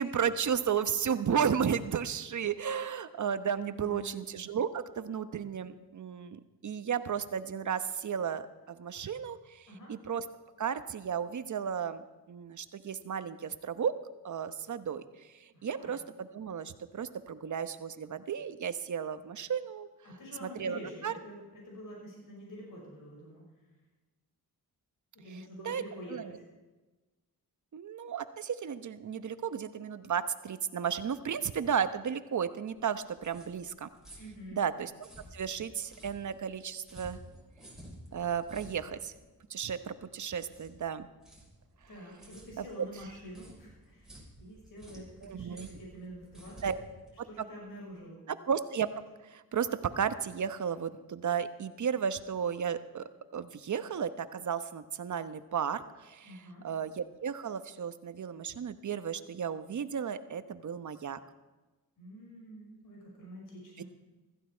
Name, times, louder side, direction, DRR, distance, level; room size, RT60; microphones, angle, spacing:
voice 1, 0.0-10.2 10.6-13.9 14.2-15.0 15.3-19.9 20.4-21.1 25.3-25.8 26.1-26.4 27.7-33.9 34.6-34.9 35.3-37.2 38.1-39.1 39.5-41.1 42.6-42.7 45.2-45.7 46.6-46.8 47.2-47.3 48.3-48.9 49.2-61.2 63.8-63.9, right 7 dB, 50° right, 11 dB, 1.1 m, -34 dB
voice 2, 3.7-4.2 9.7-9.9 15.5-15.9 20.0-23.4 25.1-26.4 34.2-34.6 41.9-46.6 47.2-48.2 56.2-56.6 62.0-63.8, equal, 60° left, -2 dB, 5.7 m, -47 dB
sound 1, 32.8-47.9, right 1 dB, ahead, 6.5 m, -53 dB
16.0 x 14.5 x 4.6 m, 1.2 s
cardioid pair, 70°, 37 cm